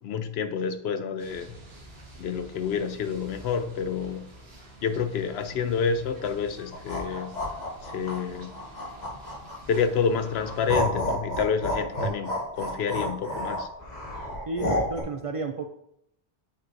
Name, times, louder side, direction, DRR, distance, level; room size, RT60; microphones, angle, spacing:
voice 1, 0.0-1.6 2.2-4.3 4.8-7.4 7.8-8.6 9.7-13.7, left 6 dB, 90° left, 0.9 m, -28 dB
sound 1, 1.2-10.8, right 1 dB, 75° right, 1.6 m, -48 dB
sound 2, 6.7-9.7 10.2-15.0, equal, 45° left, 1.5 m, -30 dB
voice 2, 14.5-15.7, right 3 dB, 50° right, 0.4 m, -32 dB
8.8 x 4.7 x 2.5 m
omnidirectional pair, 1.0 m